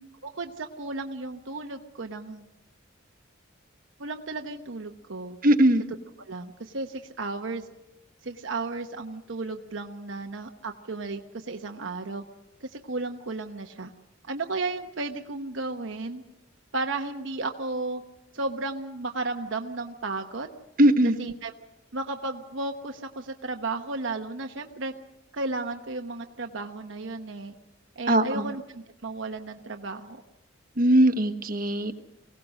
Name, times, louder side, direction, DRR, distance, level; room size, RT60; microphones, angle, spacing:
voice 1, 0.2-2.5 4.0-5.4 6.2-7.7 8.2-12.2 12.6-13.9 14.3-16.2 16.7-18.0 18.3-20.5 21.0-21.5 21.9-24.9 25.3-27.6 28.0-30.2, right 3 dB, 70° right, 4 dB, 1.0 m, -34 dB
voice 2, 5.4-5.8 20.8-21.1 28.1-28.5 30.8-31.9, right 1 dB, 45° right, 7 dB, 1.2 m, -20 dB
23.5 x 17.5 x 6.4 m, 0.95 s
head